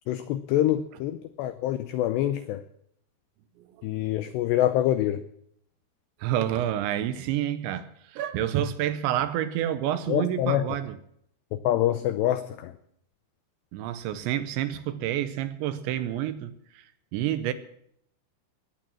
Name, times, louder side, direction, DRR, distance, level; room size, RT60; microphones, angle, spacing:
voice 1, 0.1-2.6 3.8-5.2 10.1-10.6 11.5-12.7, left 12 dB, 90° left, 2.4 m, -26 dB
voice 2, 3.6-4.3 6.2-11.0 13.7-17.5, right 11 dB, 80° right, 2.8 m, -29 dB
20.0 x 8.8 x 7.4 m
omnidirectional pair, 5.8 m